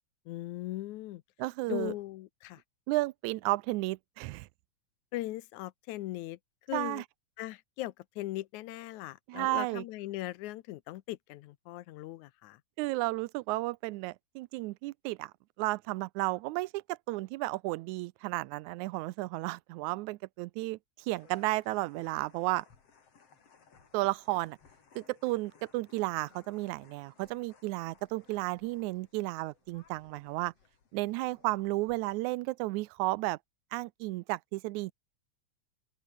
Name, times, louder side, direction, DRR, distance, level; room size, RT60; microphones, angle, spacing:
voice 1, 0.3-1.2 1.7-2.6 5.1-6.4 6.7-7.0 7.4-12.6, left 16 dB, 80° left, 2.2 m, -39 dB
voice 2, 1.4-1.9 2.9-4.5 6.7-7.0 9.3-9.8 12.8-15.3 15.6-20.8 21.1-22.7 23.9-24.6 25.0-30.5 30.9-33.4 33.7-34.9, right 20 dB, 85° right, 2.0 m, -33 dB
sound 1, 21.1-32.2, left 6 dB, 55° left, 4.1 m, -63 dB
open air
omnidirectional pair, 3.3 m